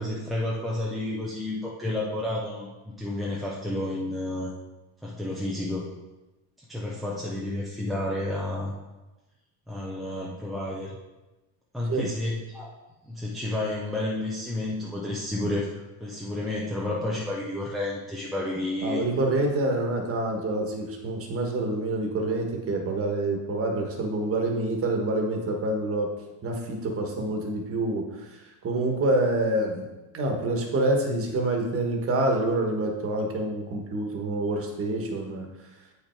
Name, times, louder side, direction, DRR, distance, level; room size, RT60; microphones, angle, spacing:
voice 1, 0.0-2.7 3.0-4.5 5.0-5.9 6.7-8.7 9.7-11.0 11.7-12.7 13.0-15.7 16.0-19.0, left 1 dB, ahead, -6 dB, 0.3 m, -30 dB
voice 2, 18.8-26.1 26.4-29.9 30.1-35.5, right 2 dB, 30° right, 2 dB, 1.2 m, -27 dB
8.4 x 5.6 x 4.4 m, 1.1 s
cardioid pair, 165°, 48 cm